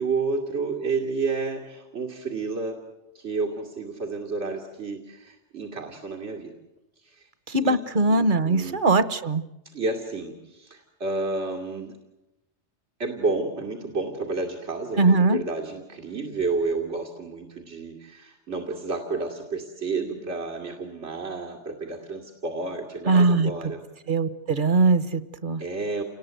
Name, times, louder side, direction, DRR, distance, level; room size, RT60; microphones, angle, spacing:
voice 1, 0.0-2.8 3.1-6.5 7.0-7.3 7.6-7.8 8.1-8.8 9.7-11.9 13.0-23.8 25.6-26.0, right 3 dB, 85° right, 1 dB, 2.7 m, -30 dB
voice 2, 7.5-9.4 15.0-15.4 23.1-23.5 24.1-25.6, right 3 dB, 50° right, 14 dB, 1.2 m, -21 dB
29.5 x 19.5 x 9.4 m, 0.95 s
omnidirectional pair, 1.1 m